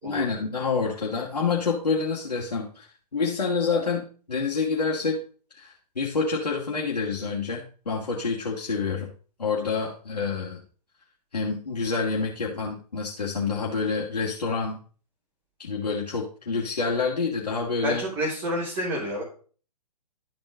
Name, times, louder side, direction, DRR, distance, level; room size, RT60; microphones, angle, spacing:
voice 1, 0.0-2.9 3.1-5.2 5.5-9.1 9.4-10.6 11.3-14.8 15.6-18.0, left 4 dB, 75° left, -3 dB, 1.9 m, -27 dB
voice 2, 17.8-19.2, equal, 30° right, -6 dB, 3.2 m, -29 dB
12.0 x 4.4 x 3.7 m, 0.41 s
figure-of-eight pair, 125°, 20 cm